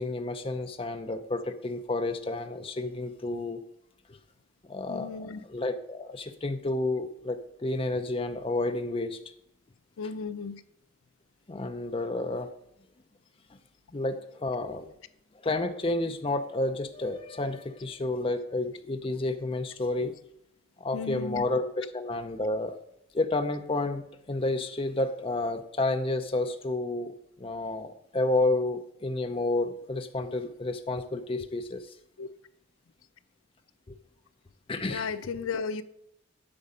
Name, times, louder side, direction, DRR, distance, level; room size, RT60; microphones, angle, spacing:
voice 1, 0.0-3.6 4.1-4.2 4.7-9.2 11.5-12.5 13.9-14.9 15.4-20.1 20.8-22.8 23.1-27.1 27.4-31.8 33.9-34.0 34.7-35.1, left 2 dB, 25° left, 0.5 m, -30 dB
voice 2, 4.9-5.4 10.0-10.6 20.9-21.5 32.2-32.3 34.9-35.8, left 5 dB, 80° left, 0.5 m, -34 dB
8.7 x 5.3 x 5.4 m
head